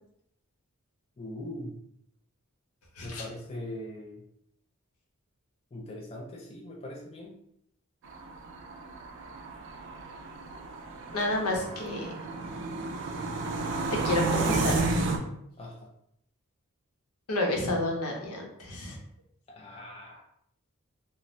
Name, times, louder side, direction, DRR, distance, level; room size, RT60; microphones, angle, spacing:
voice 1, 1.2-1.8 3.0-4.2 5.7-7.4 15.6-15.9 19.5-20.2, left 1 dB, 25° left, 0 dB, 0.3 m, -41 dB
sound 1, 8.0-15.2, right 3 dB, 55° right, 0.4 m, -32 dB
voice 2, 11.1-12.1 13.9-15.1 17.3-19.0, left 1 dB, 85° left, 0 dB, 0.7 m, -30 dB
2.6 x 2.0 x 3.1 m, 0.73 s
head